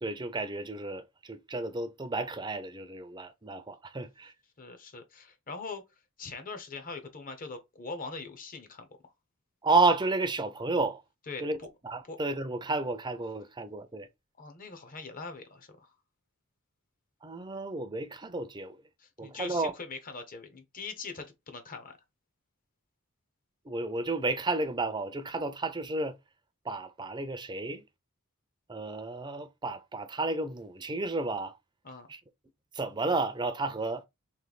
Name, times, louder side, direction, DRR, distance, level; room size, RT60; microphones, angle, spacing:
voice 1, 0.0-4.3 9.6-11.0 11.4-11.6 11.8-14.1 17.2-18.7 19.2-19.7 23.7-26.1 26.7-27.8 28.7-31.5 32.1-32.2 32.7-34.0, right 3 dB, 20° right, 0.5 m, -31 dB
voice 2, 4.6-5.8 6.2-8.9 11.3-11.7 12.0-12.2 14.4-15.9 19.0-22.0 31.8-32.1, left 4 dB, 40° left, 0.9 m, -42 dB
3.3 x 3.2 x 4.0 m
head